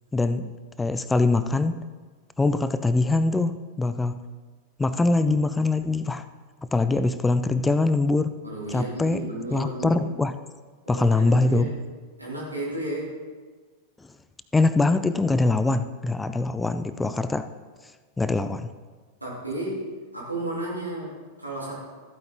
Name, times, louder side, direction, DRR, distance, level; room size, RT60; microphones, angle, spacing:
voice 1, 0.1-0.5 0.8-1.8 2.4-4.2 4.8-6.2 6.7-8.3 8.7-9.2 9.5-10.3 10.9-11.7 14.5-17.5 18.2-18.7, left 3 dB, 10° left, 12 dB, 0.5 m, -23 dB
voice 2, 8.4-10.0 10.9-11.7 12.2-13.2 19.2-21.8, right 1 dB, 85° right, -5 dB, 3.6 m, -33 dB
14.5 x 8.8 x 3.8 m, 1.4 s
figure-of-eight pair, 90°, 0 cm